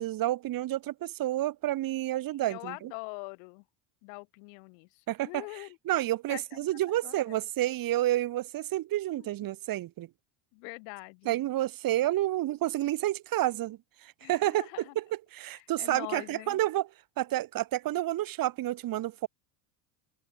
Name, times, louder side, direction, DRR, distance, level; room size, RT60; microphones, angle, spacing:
voice 1, 0.0-2.9 5.1-10.1 11.2-15.0 15.3-16.9 17.2-19.3, right 14 dB, 45° right, 1.2 m, -30 dB
voice 2, 2.5-3.6 4.0-5.8 6.3-7.2 9.2-9.5 10.5-11.4 14.2-14.9 15.5-16.6, left 40 dB or more, 70° left, 3.7 m, -44 dB
open air
supercardioid pair, 95°, 48 cm